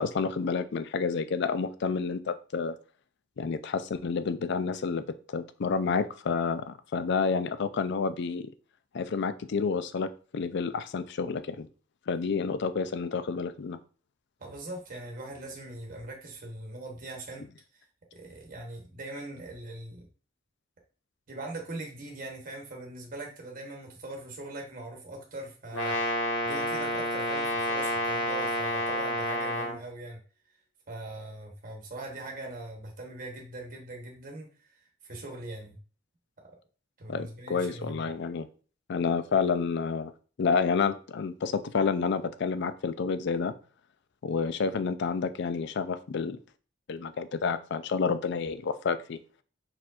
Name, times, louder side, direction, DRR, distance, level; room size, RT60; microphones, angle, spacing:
voice 1, 0.0-2.8 3.4-8.5 8.9-11.7 12.1-13.8 37.1-38.5 38.9-40.1 40.4-43.5 44.2-46.4 46.9-49.2, left 5 dB, 60° left, 12 dB, 0.4 m, -29 dB
voice 2, 14.4-17.5 18.1-20.1 21.3-26.0 26.4-30.2 30.9-34.5 35.0-35.8 37.0-38.0, right 2 dB, 45° right, 0 dB, 1.0 m, -41 dB
Brass instrument, 25.7-29.8, equal, 85° left, 1.1 m, -29 dB
4.4 x 4.3 x 2.4 m, 0.39 s
head